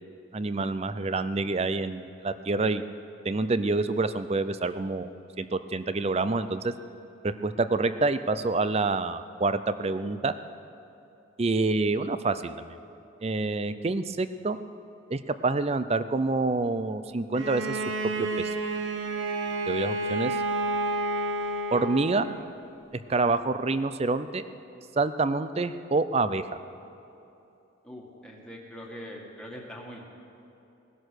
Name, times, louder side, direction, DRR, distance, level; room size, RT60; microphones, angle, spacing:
voice 1, 0.3-2.8 3.2-5.1 5.4-6.7 7.2-10.3 11.4-12.8 13.2-14.6 15.1-17.8 18.2-18.5 19.7-20.4 21.7-22.3 23.1-24.4 25.0-26.4, right 3 dB, 30° right, 12 dB, 0.5 m, -27 dB
Bowed string instrument, 17.3-22.5, right 2 dB, 70° right, 1.1 m, -30 dB
voice 2, 27.8-30.1, equal, 5° left, -2 dB, 1.9 m, -42 dB
19.5 x 11.0 x 6.5 m, 2.9 s
head